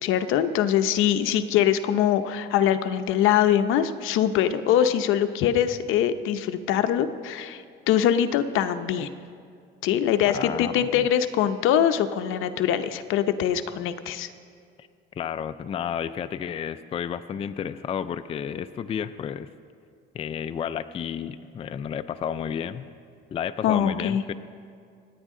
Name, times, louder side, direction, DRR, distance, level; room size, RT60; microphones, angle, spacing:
voice 1, 0.0-9.1 9.8-14.3 23.6-24.2, left 10 dB, 75° left, 9 dB, 0.7 m, -23 dB
voice 2, 10.3-11.1 14.8-14.9 15.2-19.5 20.1-22.9 23.3-24.3, left 8 dB, 30° left, 11 dB, 0.4 m, -32 dB
26.5 x 9.1 x 3.7 m, 2.3 s
cardioid pair, 140°, 21 cm